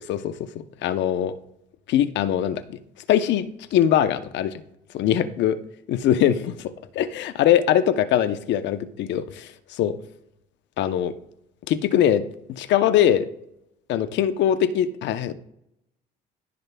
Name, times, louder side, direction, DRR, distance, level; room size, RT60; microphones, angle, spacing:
voice 1, 0.8-1.3 1.9-2.8 3.1-4.5 4.9-5.5 5.9-9.5 9.8-9.9 10.8-11.1 11.7-12.2 12.6-13.2 13.9-15.3, left 10 dB, 70° left, 11 dB, 0.8 m, -22 dB
15.0 x 6.5 x 2.3 m, 0.78 s
supercardioid pair, 70°, 19 cm